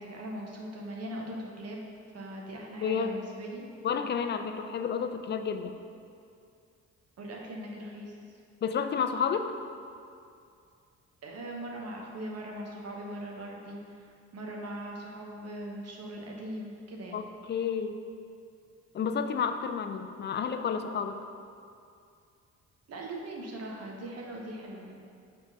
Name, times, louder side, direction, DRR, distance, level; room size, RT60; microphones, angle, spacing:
voice 1, 0.0-3.6 7.2-8.4 11.2-17.3 22.9-25.0, right 1 dB, 55° right, 0 dB, 1.0 m, -40 dB
voice 2, 2.8-3.2 3.8-5.8 8.6-9.5 17.1-18.0 18.9-21.2, left 6 dB, 35° left, 8 dB, 0.4 m, -30 dB
5.0 x 3.7 x 5.3 m, 2.4 s
cardioid pair, 90°, 30 cm